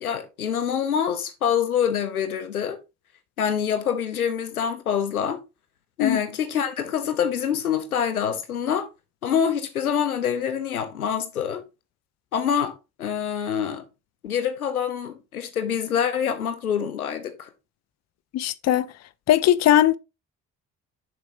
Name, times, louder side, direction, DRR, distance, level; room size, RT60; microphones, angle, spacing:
voice 1, 0.0-2.8 3.4-5.4 6.0-8.9 9.2-11.6 12.3-12.7 13.0-13.8 14.2-17.5, left 8 dB, 85° left, 0.7 m, -25 dB
voice 2, 18.3-18.9 19.3-19.9, left 12 dB, 40° left, 0.6 m, -19 dB
6.9 x 6.0 x 2.8 m
figure-of-eight pair, 40°, 42 cm